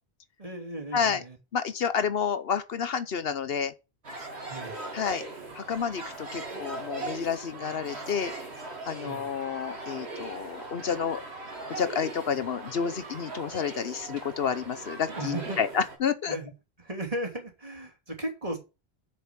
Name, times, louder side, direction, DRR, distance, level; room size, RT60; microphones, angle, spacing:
voice 1, 0.4-1.4 4.5-4.8 6.5-6.6 9.0-9.3 15.1-15.6 16.3-16.5 16.8-18.6, right 1 dB, 35° right, 2.8 m, -36 dB
voice 2, 0.9-1.2 1.5-3.7 4.9-5.2 5.5-8.3 8.9-11.2 11.7-16.4, left 7 dB, 70° left, 1.0 m, -30 dB
sound 1, 4.0-16.0, right 2 dB, 90° right, 2.6 m, -40 dB
7.1 x 6.8 x 7.3 m
omnidirectional pair, 1.1 m